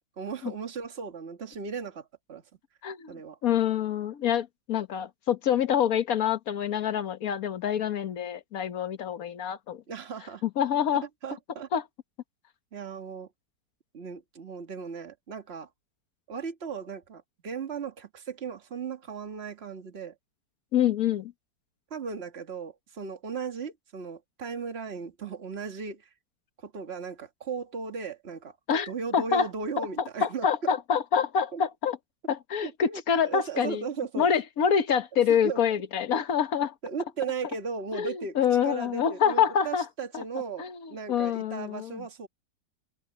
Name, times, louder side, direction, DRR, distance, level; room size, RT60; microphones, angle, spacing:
voice 1, 0.2-2.4 3.1-3.4 9.9-10.4 11.0-11.7 12.7-13.3 13.9-15.7 16.3-20.1 21.9-26.1 26.6-28.6 28.9-30.5 31.5-31.6 32.6-34.3 35.3-35.6 36.8-38.4 38.6-42.3, right 5 dB, 35° right, 1.9 m, -36 dB
voice 2, 2.8-3.2 3.4-9.8 10.4-11.1 11.7-11.8 20.7-21.3 28.7-29.5 29.8-29.9 30.2-32.0 32.3-33.8 34.2-36.7 37.9-39.8 40.1-40.2 40.6-42.0, left 8 dB, 55° left, 1.5 m, -26 dB
omnidirectional pair, 1.9 m